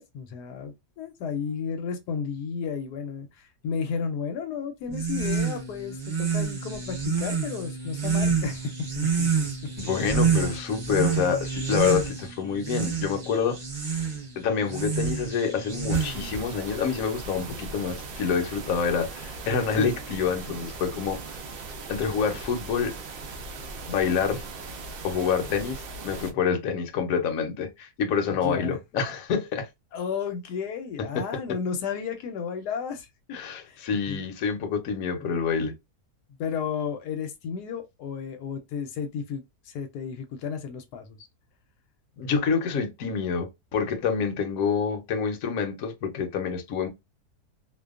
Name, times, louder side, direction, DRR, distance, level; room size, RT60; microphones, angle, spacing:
voice 1, 0.0-9.5 11.8-11.9 19.8-20.0 28.3-28.8 29.9-33.1 33.7-34.2 36.4-41.3, left 6 dB, 90° left, 1.2 m, -33 dB
sound 1, 4.9-16.4, right 5 dB, 45° right, 0.6 m, -28 dB
voice 2, 9.8-13.6 14.4-21.2 21.9-22.9 23.9-24.4 25.0-29.7 33.3-35.7 42.2-46.9, left 6 dB, 65° left, 1.0 m, -27 dB
sound 2, 15.9-26.3, right 3 dB, 85° right, 0.5 m, -39 dB
2.7 x 2.2 x 2.3 m
omnidirectional pair, 1.7 m